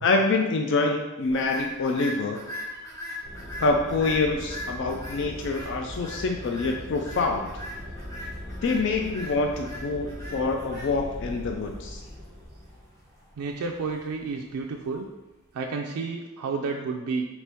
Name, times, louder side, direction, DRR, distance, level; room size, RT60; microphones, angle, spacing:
voice 1, 0.0-2.4 3.6-7.5 8.6-12.0, left 3 dB, 55° left, 3 dB, 0.3 m, -26 dB
sound 1, 1.2-15.6, left 1 dB, 15° left, 0.7 m, -41 dB
sound 2, 3.2-12.9, equal, 35° right, 1.1 m, -40 dB
voice 2, 13.4-15.1 15.5-17.3, right 4 dB, 85° right, 1 dB, 0.4 m, -31 dB
4.3 x 2.9 x 3.4 m, 1.1 s
head